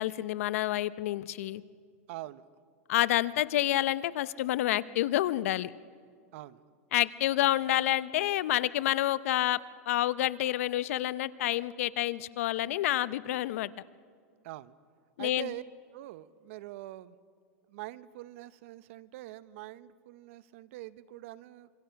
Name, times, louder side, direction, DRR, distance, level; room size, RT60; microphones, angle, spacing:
voice 1, 0.0-1.6 2.9-5.7 6.9-9.6 9.9-13.7 15.2-15.5, left 14 dB, 75° left, 17 dB, 0.7 m, -28 dB
voice 2, 2.1-2.5 6.3-6.6 14.4-14.7 15.2-15.6 15.9-17.2 17.7-21.7, right 16 dB, 65° right, 16 dB, 0.9 m, -44 dB
26.0 x 23.5 x 5.9 m, 2.1 s
supercardioid pair, 125°, 8 cm